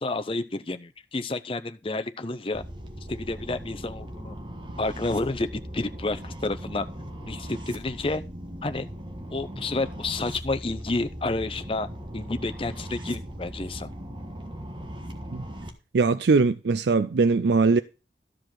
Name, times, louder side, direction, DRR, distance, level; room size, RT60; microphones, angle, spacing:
voice 1, 0.0-2.6 3.1-4.4 4.8-6.9 7.2-8.2 8.6-8.9 9.3-13.9, left 2 dB, 30° left, 0.6 m, -30 dB
sound 1, 2.5-15.7, equal, 25° right, 1.4 m, -39 dB
voice 2, 15.9-17.8, right 4 dB, 65° right, 0.4 m, -21 dB
13.0 x 5.1 x 5.9 m
head